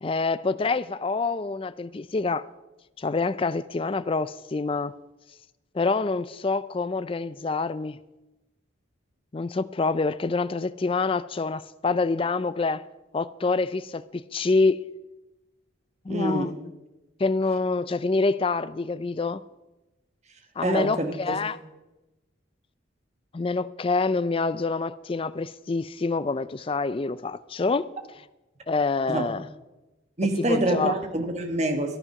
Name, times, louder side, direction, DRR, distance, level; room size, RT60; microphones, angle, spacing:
voice 1, 0.0-2.5 3.0-4.9 5.7-8.0 9.3-12.8 13.1-14.8 16.1-16.7 17.2-19.4 20.6-21.6 23.3-27.9 28.7-29.4 30.4-31.0, left 3 dB, 25° left, 0.4 m, -26 dB
voice 2, 16.1-16.5 20.6-21.4 29.1-29.3 30.2-32.0, right 1 dB, 35° right, 1.4 m, -26 dB
13.5 x 11.0 x 5.8 m
head